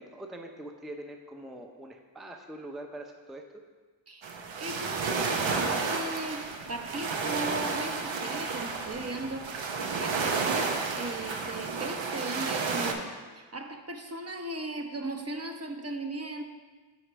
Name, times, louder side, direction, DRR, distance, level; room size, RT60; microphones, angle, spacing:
voice 1, 0.0-3.6, right 1 dB, ahead, 3 dB, 0.5 m, -43 dB
sound 1, 4.2-12.9, right 4 dB, 80° right, 0.7 m, -31 dB
voice 2, 4.6-16.4, right 2 dB, 35° right, 3 dB, 0.7 m, -37 dB
5.0 x 4.4 x 6.0 m, 1.4 s
cardioid pair, 45°, 45 cm